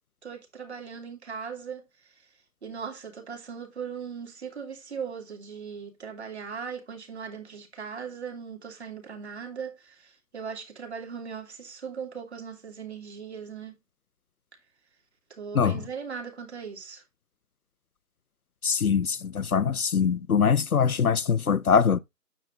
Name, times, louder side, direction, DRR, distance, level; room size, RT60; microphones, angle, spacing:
voice 1, 0.2-2.3 2.6-13.7 15.3-17.0, right 6 dB, 40° right, 2.8 m, -39 dB
voice 2, 18.6-22.0, left 6 dB, 65° left, 0.6 m, -23 dB
9.3 x 7.2 x 2.6 m
figure-of-eight pair, 155°, 49 cm